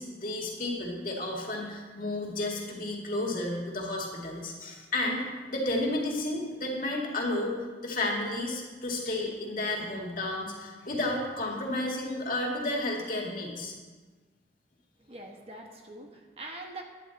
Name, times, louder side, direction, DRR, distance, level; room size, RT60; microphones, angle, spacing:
voice 1, 0.0-7.5 7.8-13.7, left 2 dB, 50° left, -1 dB, 2.0 m, -32 dB
voice 2, 15.0-16.8, right 2 dB, 35° right, 2 dB, 1.1 m, -43 dB
10.5 x 9.5 x 4.1 m, 1.4 s
head